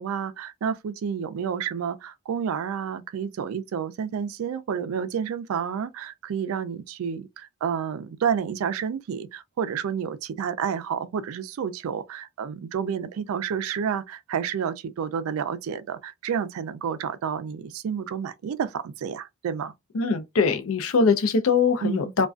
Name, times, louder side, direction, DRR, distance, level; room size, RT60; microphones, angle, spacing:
voice 1, 0.0-19.7 21.8-22.1, right 7 dB, 75° right, 0.3 m, -30 dB
voice 2, 19.9-22.3, left 5 dB, 75° left, 0.5 m, -22 dB
2.4 x 2.2 x 2.3 m
head